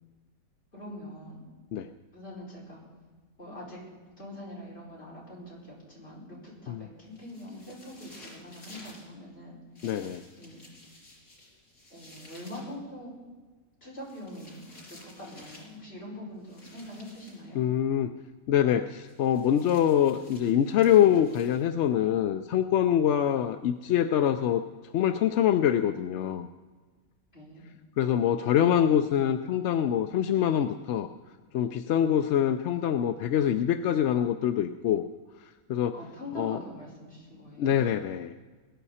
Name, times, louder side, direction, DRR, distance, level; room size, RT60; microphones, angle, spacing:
voice 1, 0.7-1.4 2.1-2.8 3.4-3.8 4.2-9.6 10.4-10.6 11.9-13.1 13.8-14.7 15.0-17.7 27.3-27.6 35.9-37.8, left 1 dB, 45° left, -6 dB, 5.6 m, -43 dB
sound 1, 7.1-9.1 9.7-12.7 14.0-15.8 16.4-17.5 19.0-21.9, left 1 dB, 90° left, 4.0 m, -53 dB
voice 2, 9.8-10.2 17.5-18.1 18.5-24.6 24.9-26.5 28.0-31.1 31.5-35.0 35.7-35.9 36.4-36.6 37.6-38.3, left 10 dB, 65° left, 8 dB, 0.8 m, -24 dB
21.5 x 11.0 x 4.3 m, 1.4 s
omnidirectional pair, 1.5 m